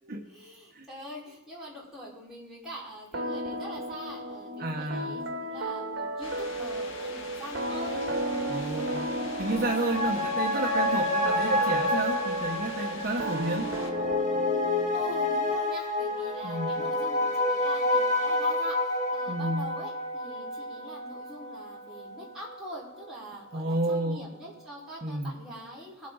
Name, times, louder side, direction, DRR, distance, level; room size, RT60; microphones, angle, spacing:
voice 1, 0.0-8.0 14.9-26.1, equal, ahead, -9 dB, 4.9 m, -44 dB
sound 1, 3.1-15.5, right 1 dB, 70° right, 1.5 m, -34 dB
voice 2, 4.6-5.2 8.5-9.1 9.4-13.7 16.4-16.8 19.3-19.6 23.5-24.3 25.0-25.4, right 1 dB, 50° right, 1 dB, 1.0 m, -31 dB
sound 2, 6.2-13.9, left 3 dB, 85° left, 1.6 m, -43 dB
sound 3, 9.3-22.1 22.5-22.6, left 1 dB, 35° left, 1.9 m, -29 dB
20.5 x 8.3 x 4.0 m, 0.93 s
head